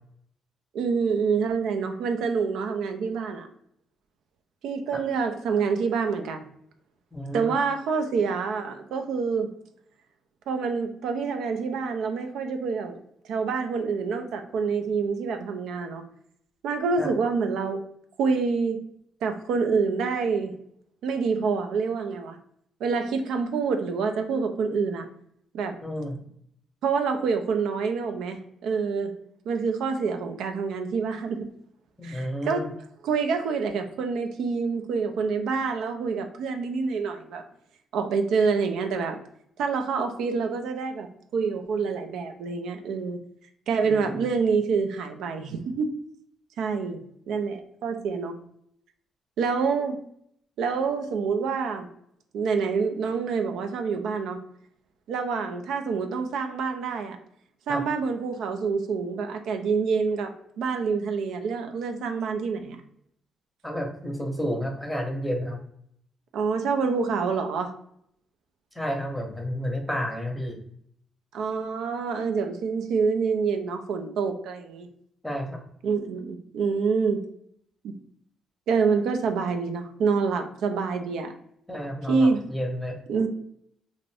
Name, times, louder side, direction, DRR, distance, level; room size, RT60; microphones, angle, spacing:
voice 1, 0.7-3.5 4.6-6.4 7.3-9.5 10.5-13.0 13.2-16.0 16.6-17.8 18.2-18.9 19.2-20.5 21.0-22.4 22.8-25.1 25.5-25.7 26.8-29.1 29.5-31.5 32.0-32.7 33.0-37.4 37.9-39.2 39.6-41.1 41.3-43.2 43.7-45.9 46.6-48.3 49.4-50.0 50.6-51.9 52.3-54.4 55.1-57.2 57.7-62.8 66.3-67.7 71.3-74.9 75.8-77.3 77.8-77.9 78.7-81.3 82.1-82.4 83.1-83.3, right 5 dB, 80° right, 6 dB, 0.4 m, -27 dB
voice 2, 7.1-7.5 17.0-17.1 25.8-26.2 32.0-32.7 43.8-44.2 57.7-57.8 63.6-65.6 68.8-70.6 75.2-75.6 81.7-83.0, equal, 5° left, 2 dB, 0.7 m, -31 dB
2.5 x 2.5 x 3.2 m, 0.69 s
cardioid pair, 90°, 0 cm